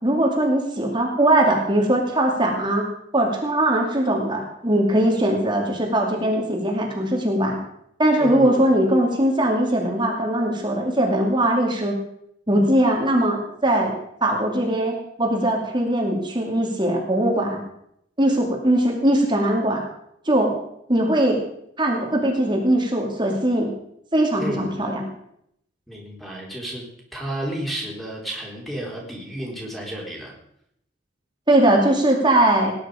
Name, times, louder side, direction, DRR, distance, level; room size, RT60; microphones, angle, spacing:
voice 1, 0.0-2.9 3.1-7.6 8.0-12.0 12.5-13.9 14.2-17.6 18.2-19.8 20.2-20.6 20.9-21.4 21.8-23.7 24.1-25.1 31.5-32.7, right 1 dB, 25° right, 0 dB, 2.6 m, -20 dB
voice 2, 8.2-8.6 24.4-24.7 25.9-26.8 27.1-30.3, right 1 dB, ahead, -2 dB, 4.2 m, -32 dB
19.5 x 10.5 x 5.1 m, 0.74 s
head